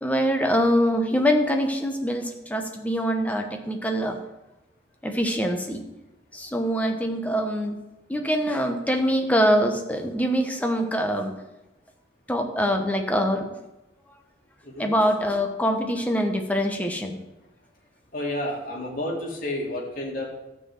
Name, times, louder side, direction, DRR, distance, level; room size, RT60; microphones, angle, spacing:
voice 1, 0.0-4.2 5.0-5.8 6.3-7.7 8.1-11.3 12.3-13.5 14.8-17.2, equal, 10° left, 4 dB, 1.0 m, -24 dB
voice 2, 18.1-20.2, left 1 dB, 50° left, -3 dB, 2.4 m, -30 dB
12.5 x 4.7 x 7.7 m, 0.99 s
head